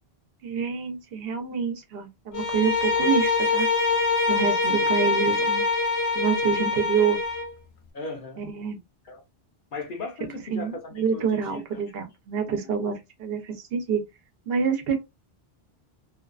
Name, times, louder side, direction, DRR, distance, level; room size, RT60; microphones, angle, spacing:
voice 1, 0.4-3.7 4.3-5.6 6.1-7.2 8.4-8.8 10.5-14.0 14.5-15.0, right 6 dB, 70° right, 0.9 m, -27 dB
Bowed string instrument, 2.3-7.5, left 3 dB, 85° left, 0.9 m, -24 dB
voice 2, 7.9-8.4 9.0-9.2 9.7-11.6 12.5-13.0, left 3 dB, 60° left, 0.7 m, -37 dB
2.5 x 2.3 x 2.3 m
omnidirectional pair, 1.1 m